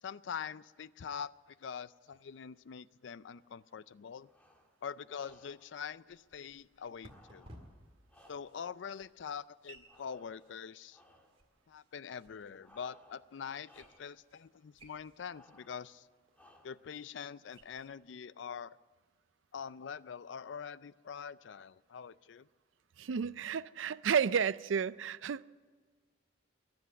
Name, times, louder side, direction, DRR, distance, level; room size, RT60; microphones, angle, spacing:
voice 1, 0.0-4.3 4.8-7.5 8.3-11.0 11.7-16.1 16.6-18.8 19.5-22.5, left 7 dB, 70° left, 0.4 m, -44 dB
sound 1, 4.2-4.8 5.1-5.7 7.0-8.8 9.9-10.6 10.9-11.4 12.6-13.3 13.6-14.2 15.3-15.9 16.3-16.9, left 1 dB, 10° left, 1.7 m, -63 dB
sound 2, 5.4-17.9, right 1 dB, 30° right, 2.0 m, -62 dB
voice 2, 23.0-25.4, right 7 dB, 85° right, 0.4 m, -31 dB
22.5 x 7.9 x 8.1 m
head